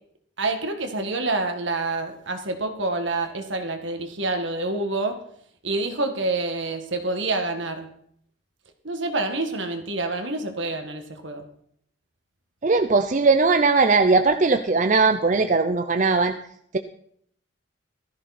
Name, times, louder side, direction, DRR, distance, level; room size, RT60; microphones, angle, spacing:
voice 1, 0.4-5.2 5.6-7.9 8.8-11.5, right 2 dB, 75° right, 6 dB, 1.9 m, -27 dB
voice 2, 12.6-16.3, right 4 dB, 40° right, 7 dB, 0.6 m, -19 dB
16.0 x 13.5 x 4.3 m, 0.66 s
head